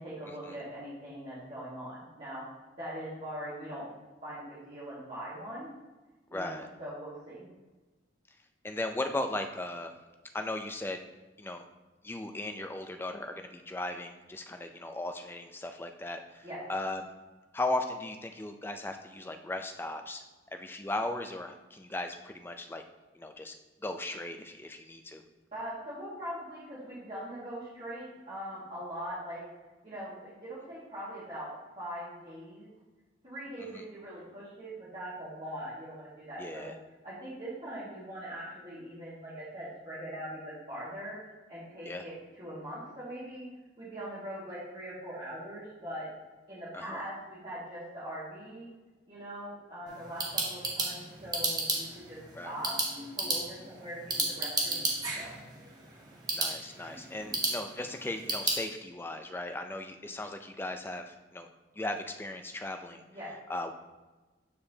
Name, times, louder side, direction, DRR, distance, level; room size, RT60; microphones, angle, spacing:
voice 1, 0.0-2.4 2.8-3.9 4.2-5.7 6.3-7.5 16.4-16.6 25.5-29.4 29.8-32.7 33.2-36.7 37.0-41.2 41.5-43.5 43.8-46.1 46.5-48.7 49.1-52.8 53.1-55.4 57.2-57.3 63.1-63.3, equal, 35° right, -12 dB, 2.0 m, -41 dB
voice 2, 6.3-6.7 8.6-9.9 10.3-11.0 11.4-11.6 12.0-17.0 17.5-20.2 20.5-22.8 23.1-23.5 23.8-25.2 33.7-33.8 36.4-36.7 41.8-42.0 46.7-47.0 52.3-52.5 56.3-61.5 61.7-63.0 63.5-63.7, left 2 dB, 10° left, 6 dB, 0.4 m, -37 dB
sound 1, 49.9-58.6, right 2 dB, 20° right, 1.0 m, -34 dB
8.5 x 4.8 x 2.8 m, 1.2 s
head